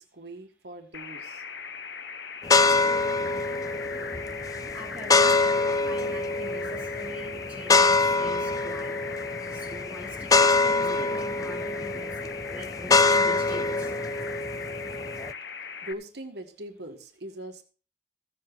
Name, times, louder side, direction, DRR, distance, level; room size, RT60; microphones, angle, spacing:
voice 1, 0.0-1.4 15.8-17.6, right 1 dB, 75° right, 5 dB, 1.6 m, -41 dB
sound 1, 0.9-15.9, left 6 dB, 85° left, 1.0 m, -39 dB
sound 2, 2.4-15.3, left 3 dB, 20° left, 0.4 m, -25 dB
voice 2, 4.7-9.0 9.5-13.9 14.9-15.1, equal, 5° right, -4 dB, 4.1 m, -43 dB
15.0 x 7.7 x 4.5 m, 0.36 s
head